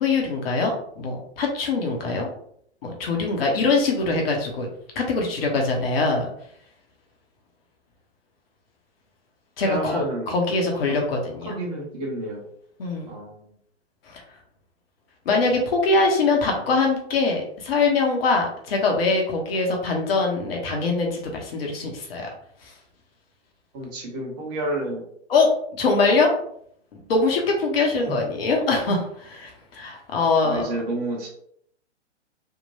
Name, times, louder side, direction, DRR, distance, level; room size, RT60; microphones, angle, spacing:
voice 1, 0.0-2.3 2.8-4.7 5.0-6.3 9.6-11.5 12.8-13.2 14.1-14.2 15.3-22.3 22.6-22.7 25.3-25.5 25.8-26.3 26.9-30.7, left 3 dB, 55° left, 1 dB, 0.9 m, -23 dB
voice 2, 9.6-10.3 11.4-12.4 13.1-13.4 23.7-25.0 28.1-28.2 30.4-31.3, right 2 dB, 35° right, -1 dB, 1.1 m, -30 dB
3.6 x 2.2 x 2.7 m, 0.66 s
figure-of-eight pair, 115°, 35 cm